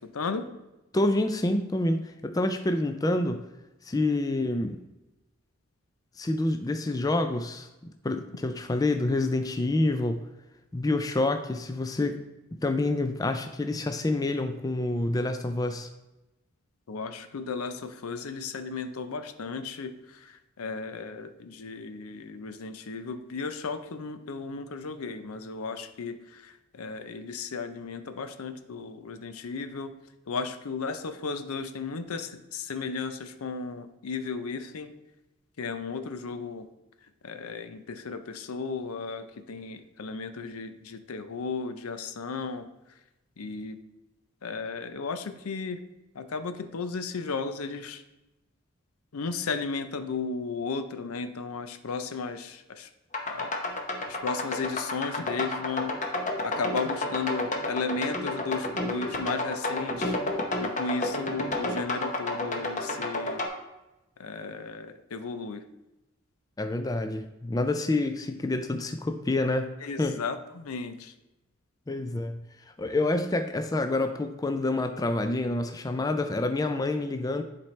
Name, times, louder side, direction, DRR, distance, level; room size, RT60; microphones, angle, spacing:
voice 1, 0.9-3.4 3.8-4.8 6.2-10.2 10.7-12.2 12.6-15.9 66.6-69.7 70.0-70.2 71.9-72.4 72.8-77.4, left 2 dB, 15° left, 7 dB, 0.3 m, -27 dB
voice 2, 16.9-17.7 18.0-19.9 20.6-21.3 21.6-26.1 26.8-29.9 30.3-32.3 32.7-33.1 33.4-34.9 35.6-36.6 37.3-37.8 38.1-38.2 38.5-39.2 39.5-40.7 41.1-42.6 43.4-43.8 44.4-45.8 46.3-48.0 49.1-52.4 53.4-53.5 54.2-55.9 56.4-60.0 60.6-63.4 64.2-64.8 65.1-65.6 69.9-70.3 70.7-70.9, left 4 dB, 90° left, 10 dB, 0.6 m, -34 dB
sound 1, 53.1-63.5, left 2 dB, 35° left, 0.8 m, -31 dB
10.5 x 4.3 x 3.2 m, 0.98 s
head